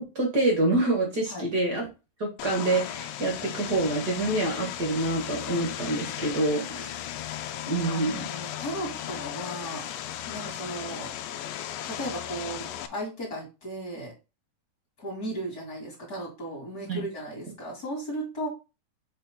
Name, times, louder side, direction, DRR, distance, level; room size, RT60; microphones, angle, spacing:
voice 1, 0.0-1.9 2.2-7.0 7.7-8.3 16.9-17.0, right 2 dB, 50° right, 1 dB, 1.1 m, -26 dB
Vehicle, 2.4-12.9, left 11 dB, 85° left, 2.2 m, -36 dB
voice 2, 7.9-9.8 10.3-11.1 11.8-14.1 15.0-18.5, right 1 dB, 30° left, -1 dB, 2.5 m, -36 dB
6.6 x 4.2 x 4.1 m, 0.28 s
omnidirectional pair, 4.1 m